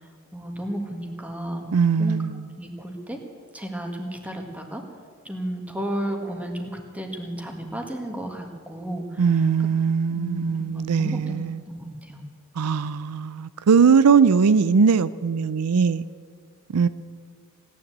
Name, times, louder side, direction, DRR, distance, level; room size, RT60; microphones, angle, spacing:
voice 1, 0.3-1.6 2.0-2.2 2.6-3.2 3.5-4.8 5.3-9.4 10.1-11.4 11.7-12.2, right 1 dB, 5° right, 3 dB, 1.7 m, -33 dB
voice 2, 1.7-2.4 9.2-11.6 12.6-16.1 16.7-16.9, right 6 dB, 90° right, 16 dB, 0.5 m, -20 dB
17.0 x 10.0 x 7.9 m, 2.1 s
head